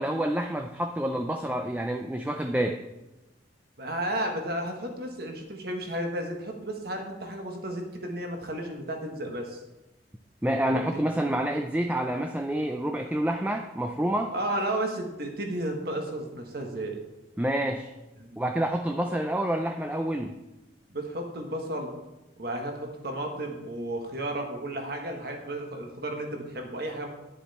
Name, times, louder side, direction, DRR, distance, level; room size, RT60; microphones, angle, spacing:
voice 1, 0.0-2.8 10.4-14.3 17.4-17.9 18.4-20.3, right 1 dB, 10° right, 5 dB, 0.4 m, -28 dB
voice 2, 3.8-9.6 10.7-11.0 14.3-17.0 18.2-18.5 19.1-19.2 20.9-21.9 22.4-27.1, right 1 dB, 55° right, 3 dB, 1.5 m, -33 dB
10.5 x 7.1 x 4.3 m, 1.0 s
head